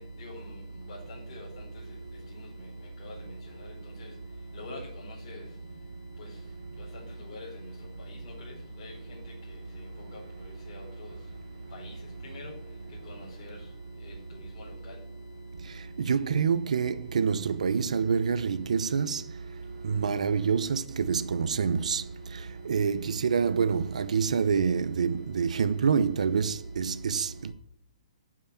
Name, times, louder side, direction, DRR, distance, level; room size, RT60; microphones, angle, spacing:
voice 1, 0.9-1.5 3.0-3.1 4.0-4.1 4.6-4.8 5.2-5.4 7.3-7.5 8.8-8.9 10.7-11.1 11.7-11.9 12.2-12.5 13.1-13.5, left 1 dB, 40° left, 4.6 m, -41 dB
voice 2, 16.0-19.2 19.8-22.0 22.3-27.5, right 6 dB, 75° right, 0.9 m, -27 dB
11.5 x 6.2 x 8.9 m
hypercardioid pair, 170°, 4 cm